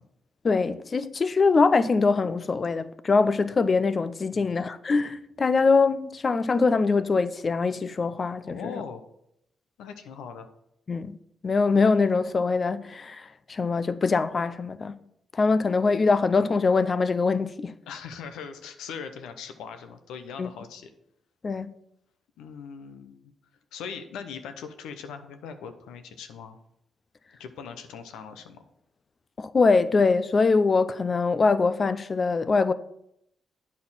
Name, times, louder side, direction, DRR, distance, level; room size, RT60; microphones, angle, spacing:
voice 1, 0.4-8.7 10.9-11.2 11.4-15.0 15.3-17.7 20.4-20.5 21.4-21.7 29.4-32.7, left 4 dB, 40° left, 0.5 m, -23 dB
voice 2, 8.5-9.0 9.8-10.5 17.9-20.9 22.4-23.3 23.7-26.6 27.4-28.6, left 6 dB, 90° left, 0.7 m, -40 dB
8.7 x 4.2 x 5.5 m
supercardioid pair, 65°, 0 cm